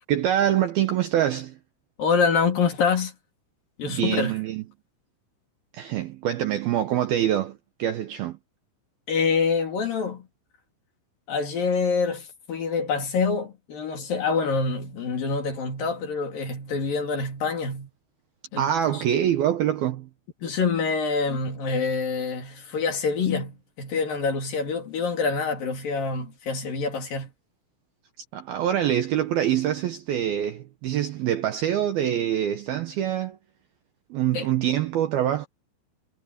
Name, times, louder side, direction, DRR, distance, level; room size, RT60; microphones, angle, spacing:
voice 1, 0.1-1.6 3.8-4.6 5.7-8.4 18.6-20.1 28.3-33.4 34.1-35.5, right 11 dB, 70° right, 2.4 m, -25 dB
voice 2, 2.0-3.1 3.8-4.4 9.1-10.3 11.3-17.9 18.5-19.0 20.4-27.3 34.3-34.5, left 5 dB, 50° left, 4.2 m, -26 dB
omnidirectional pair, 5.6 m